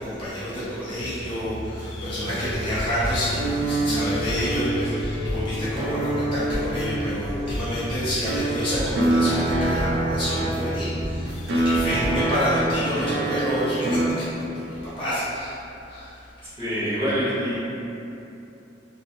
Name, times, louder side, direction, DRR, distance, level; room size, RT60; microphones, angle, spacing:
voice 1, 0.0-15.6 15.9-16.3, equal, 30° left, -12 dB, 0.7 m, -28 dB
sound 1, 1.0-12.0, equal, 75° left, 0.3 m, -35 dB
sound 2, 1.8-12.2, equal, 85° right, 1.0 m, -35 dB
sound 3, 3.3-14.1, right 1 dB, 60° right, 0.4 m, -26 dB
voice 2, 16.4-17.6, equal, 30° right, -13 dB, 1.0 m, -26 dB
2.6 x 2.6 x 2.6 m, 2.8 s
head